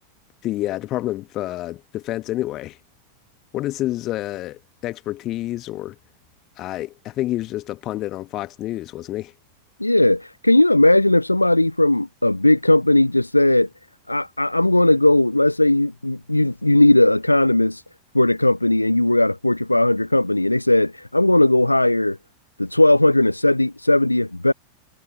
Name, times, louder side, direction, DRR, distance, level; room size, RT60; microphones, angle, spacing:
voice 1, 0.4-2.8 3.5-5.9 6.6-9.3, left 15 dB, 35° left, 1.4 m, -28 dB
voice 2, 9.8-13.7 14.1-17.8 18.1-22.2 22.6-24.5, left 1 dB, 85° left, 0.3 m, -17 dB
figure-of-eight pair, 90°, 0 cm